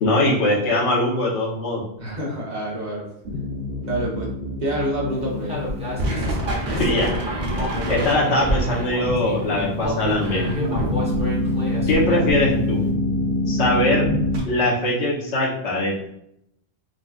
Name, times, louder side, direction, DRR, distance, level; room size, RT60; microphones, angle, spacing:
voice 1, 0.0-1.8 6.8-7.1 7.9-10.5 11.9-12.8 13.5-14.1 14.4-16.1, left 1 dB, 90° left, -2 dB, 1.1 m, -21 dB
voice 2, 2.0-3.0 3.9-4.3 4.6-5.5, right 1 dB, 45° right, -4 dB, 0.9 m, -27 dB
sound 1, 3.2-14.4, left 1 dB, 75° right, 1.0 m, -25 dB
Human voice, 5.5-9.4 9.8-12.5, equal, 5° right, 0.7 m, -30 dB
3.8 x 2.4 x 2.3 m, 0.75 s
omnidirectional pair, 1.1 m